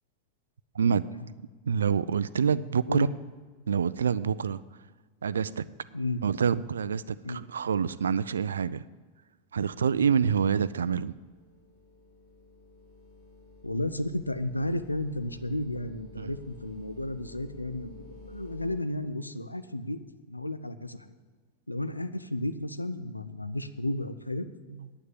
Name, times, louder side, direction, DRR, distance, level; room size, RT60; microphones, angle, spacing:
voice 1, 1.7-3.1 3.7-4.6 5.2-5.6 6.2-8.8 9.5-11.1 16.2-16.3, right 7 dB, 70° right, 0.4 m, -26 dB
sound 1, 10.7-18.8, left 3 dB, 55° left, 3.5 m, -51 dB
voice 2, 13.6-20.0 20.3-21.1 21.7-24.5, left 1 dB, 85° left, 0.5 m, -33 dB
9.4 x 9.1 x 7.2 m
figure-of-eight pair, 90°, 0 cm